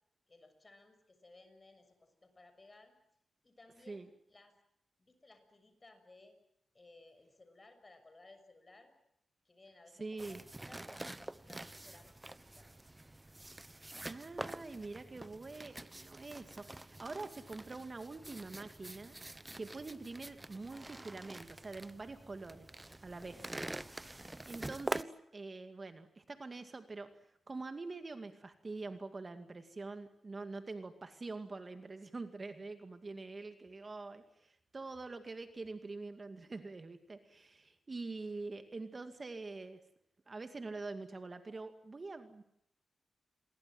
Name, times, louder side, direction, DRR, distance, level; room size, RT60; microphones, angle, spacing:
voice 1, 0.3-3.0 3.4-4.6 5.0-6.4 6.7-8.9 9.4-10.4 10.7-12.7, left 2 dB, 30° left, 8 dB, 6.6 m, -60 dB
voice 2, 10.0-10.4 14.0-19.2 19.6-22.7 23.0-23.6 24.4-27.1 27.5-39.8 40.3-42.4, right 3 dB, 35° right, 8 dB, 2.2 m, -45 dB
sound 1, 10.2-25.0, right 1 dB, 15° right, 1.0 m, -46 dB
28.5 x 22.5 x 7.7 m, 0.76 s
cardioid pair, 80°, 0 cm